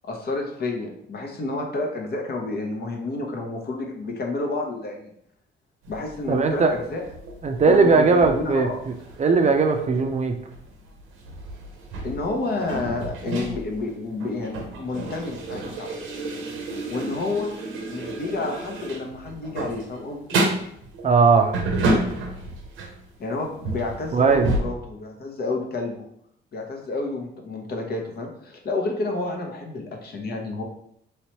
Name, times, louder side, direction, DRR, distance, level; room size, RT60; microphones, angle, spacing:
voice 1, 0.0-5.1 5.9-7.0 7.6-8.8 12.0-15.9 16.9-17.5 17.8-20.4 23.2-26.1 26.5-30.6, left 2 dB, 55° left, 2 dB, 0.9 m, -30 dB
sound 1, 5.8-23.2 23.5-24.6, right 2 dB, 90° right, 0.7 m, -31 dB
voice 2, 6.3-6.8 7.4-8.7 9.2-10.4 21.0-21.6 24.1-24.5, right 4 dB, 35° right, 4 dB, 0.5 m, -18 dB
3.1 x 3.0 x 3.0 m, 0.71 s
cardioid pair, 90°, 20 cm